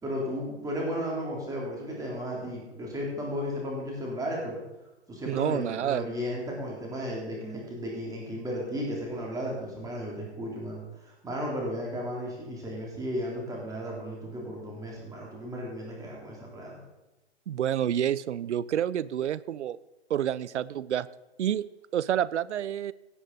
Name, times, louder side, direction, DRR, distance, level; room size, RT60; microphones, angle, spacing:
voice 1, 0.0-4.6 5.1-16.8, equal, 10° right, -2 dB, 3.5 m, -34 dB
voice 2, 5.3-6.0 17.5-19.8 20.1-21.1 21.4-21.7 21.9-22.9, right 10 dB, 80° right, 19 dB, 0.6 m, -28 dB
17.0 x 7.9 x 4.1 m, 0.99 s
hypercardioid pair, 135°, 34 cm